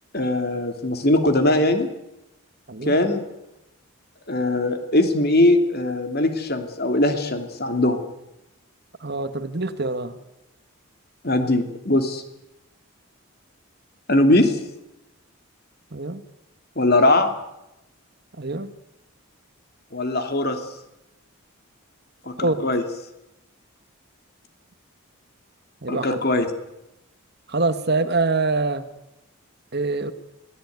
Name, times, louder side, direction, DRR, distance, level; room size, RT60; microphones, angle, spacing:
voice 1, 0.1-1.9 2.8-3.2 4.3-8.0 11.2-12.2 14.1-14.6 16.8-17.3 19.9-20.6 22.3-22.8 25.9-26.5, left 1 dB, 45° left, 6 dB, 2.9 m, -20 dB
voice 2, 9.0-10.2 15.9-16.2 18.4-18.7 22.4-22.7 25.8-26.2 27.5-28.9 29.7-30.1, right 3 dB, 45° right, 11 dB, 1.4 m, -25 dB
22.5 x 16.5 x 9.5 m, 0.91 s
head